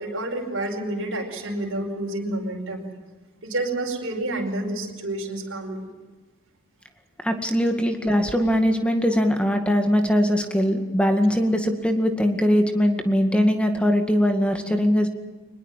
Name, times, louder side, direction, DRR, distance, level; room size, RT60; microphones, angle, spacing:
voice 1, 0.0-2.9 3.4-5.9, right 1 dB, 65° right, -1 dB, 5.0 m, -29 dB
voice 2, 7.2-15.1, equal, 5° left, 5 dB, 2.1 m, -21 dB
23.5 x 21.0 x 7.5 m, 1.3 s
head